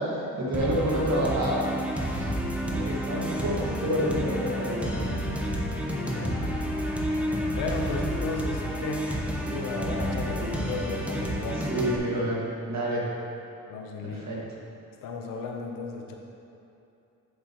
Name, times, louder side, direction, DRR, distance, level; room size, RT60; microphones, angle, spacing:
voice 1, 0.0-1.8 2.1-2.3 2.6-5.0 11.7-13.1 14.0-14.4, right 1 dB, 55° right, -4 dB, 1.9 m, -28 dB
sound 1, 0.5-12.0, equal, 5° right, 1.0 m, -30 dB
voice 2, 5.9-6.4 7.5-9.1 9.4-11.8 12.1-12.3 13.7-14.4 15.0-16.2, left 4 dB, 80° left, 2 dB, 0.9 m, -35 dB
8.6 x 7.9 x 3.1 m, 2.7 s
cardioid pair, 95°, 32 cm